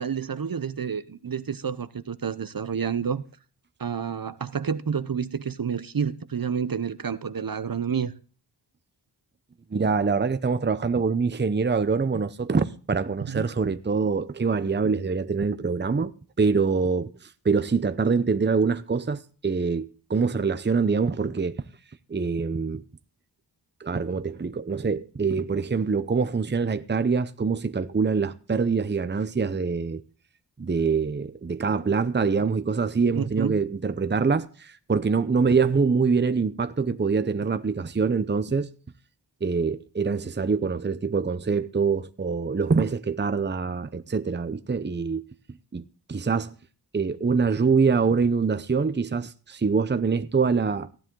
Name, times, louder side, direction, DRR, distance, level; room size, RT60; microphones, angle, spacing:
voice 1, 0.0-3.2 3.8-8.1 13.2-13.5 33.1-33.6, right 7 dB, 55° right, 0.8 m, -29 dB
voice 2, 9.7-16.1 16.4-21.6 22.1-22.8 23.8-30.0 30.6-38.7 39.4-45.2 45.7-45.8 46.1-46.5 46.9-50.9, right 5 dB, 25° right, 0.7 m, -24 dB
15.5 x 10.5 x 3.8 m
wide cardioid pair, 80°, 42 cm